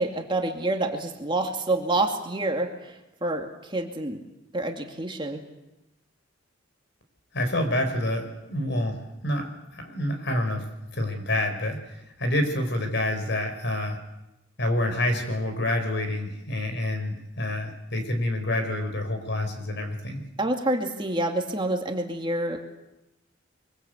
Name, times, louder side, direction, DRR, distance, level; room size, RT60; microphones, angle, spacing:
voice 1, 0.0-4.2 4.5-5.4 20.4-22.6, right 2 dB, 25° right, 3 dB, 2.3 m, -27 dB
voice 2, 7.3-10.6 10.9-14.0 14.6-20.3, left 1 dB, 60° left, 6 dB, 5.2 m, -28 dB
24.5 x 23.5 x 8.1 m, 0.93 s
head